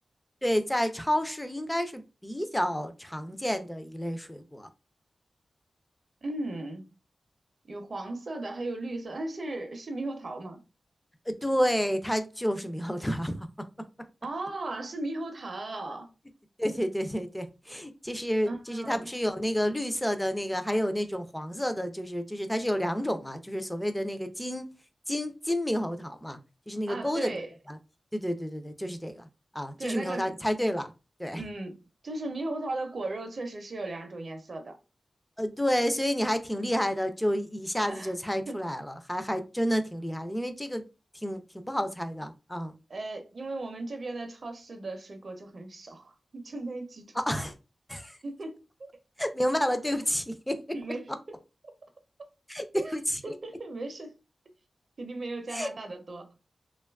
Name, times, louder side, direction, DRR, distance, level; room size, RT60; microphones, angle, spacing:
voice 1, 0.4-4.7 11.3-13.5 16.6-24.7 25.1-26.4 26.7-27.3 27.7-27.8 28.1-29.2 29.5-30.9 31.2-31.4 35.4-40.8 41.2-42.7 47.2-47.5 47.9-48.2 49.2-50.6 52.5-53.2 55.5-55.7, equal, 5° left, 0.3 m, -30 dB
voice 2, 6.2-6.9 7.7-10.6 14.2-16.1 18.5-19.1 26.9-27.5 29.8-30.3 31.3-34.8 37.8-38.1 38.5-38.6 42.9-47.2 48.2-48.9 50.5-51.4 52.7-53.0 53.2-54.1 55.0-56.4, right 2 dB, 55° right, 0.5 m, -37 dB
2.8 x 2.2 x 2.2 m
wide cardioid pair, 110°, 0 cm